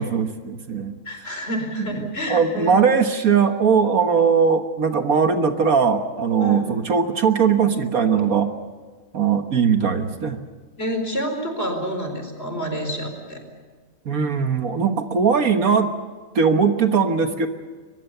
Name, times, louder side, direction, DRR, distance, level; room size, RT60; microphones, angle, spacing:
voice 1, 0.0-1.0 1.3-1.4 1.8-8.5 9.1-10.4 14.1-15.9 16.4-17.5, right 6 dB, 65° right, 7 dB, 1.7 m, -20 dB
voice 2, 1.0-2.8 6.4-6.7 10.8-13.4, equal, 40° left, 5 dB, 4.7 m, -28 dB
23.0 x 22.5 x 6.8 m, 1.4 s
omnidirectional pair, 1.6 m